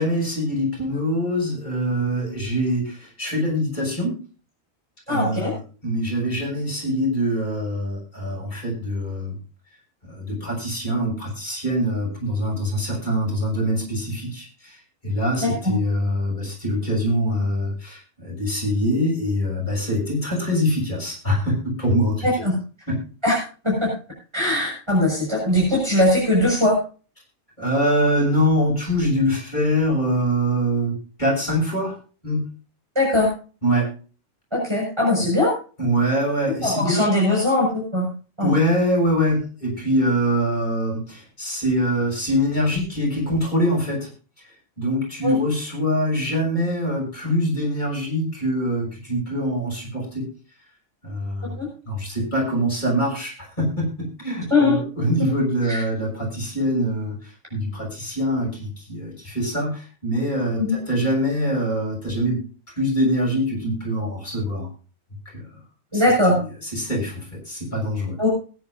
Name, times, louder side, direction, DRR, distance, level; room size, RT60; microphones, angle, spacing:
voice 1, 0.0-4.1 5.1-9.4 10.0-14.8 15.0-22.5 22.9-23.0 27.6-32.0 32.2-32.4 33.6-33.9 35.8-37.1 38.4-44.1 44.8-50.2 51.0-51.5 51.9-53.9 54.2-62.4 62.8-64.7 65.3-65.5 65.9-66.0 66.3-68.2, equal, 40° left, -2 dB, 6.8 m, -24 dB
voice 2, 5.1-5.5 15.4-15.7 22.2-22.6 23.2-23.4 23.6-23.9 24.3-26.8 33.0-33.3 34.5-35.5 36.6-38.1 38.4-38.5 45.2-45.4 51.4-51.7 54.5-54.8 55.7-55.8 60.6-60.8 65.9-66.4 68.2-68.3, left 1 dB, 25° right, -3 dB, 5.8 m, -20 dB
20.5 x 10.0 x 2.6 m, 0.36 s
omnidirectional pair, 1.2 m